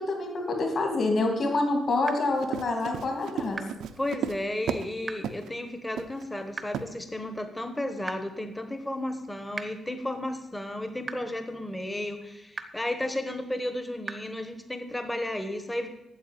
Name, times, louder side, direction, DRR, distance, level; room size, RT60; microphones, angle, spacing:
voice 1, 0.0-3.6, left 2 dB, 40° left, 3 dB, 2.7 m, -27 dB
sound 1, 2.1-2.2 3.5-3.6 5.1-5.2 6.5-6.6 8.1-8.2 9.5-9.6 11.1-11.2 12.5-12.6 14.1-14.2, right 4 dB, 25° right, 0.8 m, -34 dB
Run, 2.3-4.9 5.2-5.5 6.0-6.2 6.7-6.9, right 8 dB, 80° right, 0.7 m, -34 dB
voice 2, 4.0-15.9, left 1 dB, 10° left, 8 dB, 1.1 m, -33 dB
9.3 x 7.8 x 9.2 m, 0.89 s
cardioid pair, 175°, 0 cm